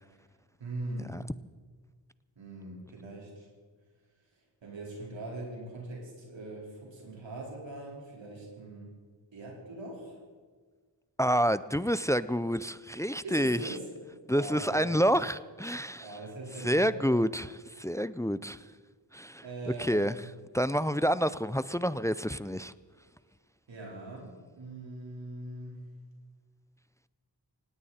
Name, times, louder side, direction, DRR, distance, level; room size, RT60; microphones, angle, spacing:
voice 1, 0.6-1.2 2.4-3.5 4.6-8.9 9.3-10.2 13.2-13.9 14.3-15.0 15.9-17.1 19.4-20.3 23.7-25.8, right 2 dB, 85° right, -2 dB, 4.5 m, -41 dB
voice 2, 11.2-13.7 14.3-16.1 16.6-18.6 19.1-19.4 19.8-20.1 20.5-22.7, equal, 5° left, 16 dB, 0.4 m, -28 dB
18.5 x 17.5 x 4.3 m, 1.5 s
wide cardioid pair, 70°, 44 cm